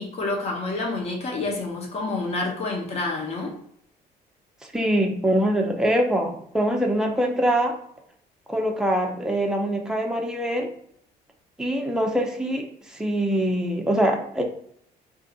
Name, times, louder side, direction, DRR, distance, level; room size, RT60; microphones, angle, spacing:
voice 1, 0.0-3.5, left 3 dB, 40° left, -1 dB, 0.9 m, -28 dB
voice 2, 4.7-7.8 8.5-10.7 11.6-14.4, right 1 dB, 5° right, 1 dB, 0.5 m, -23 dB
2.6 x 2.4 x 3.8 m, 0.67 s
cardioid pair, 110°, 17 cm